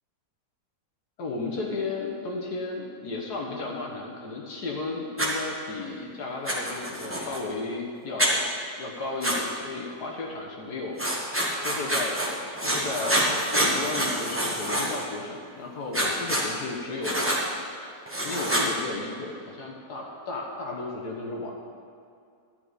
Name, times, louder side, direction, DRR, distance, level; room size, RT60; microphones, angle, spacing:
voice 1, 1.2-8.4 8.8-11.1 11.6-17.4 17.8-21.5, left 3 dB, 75° left, -1 dB, 1.7 m, -34 dB
Writing, 5.2-5.3 6.4-7.4 8.2-8.3 9.2-9.4 11.0-12.3 12.6-15.0 15.9-16.4 17.0-17.4 18.1-18.7, right 1 dB, 10° right, 1.2 m, -26 dB
11.5 x 9.4 x 4.0 m, 2.3 s
omnidirectional pair, 1.7 m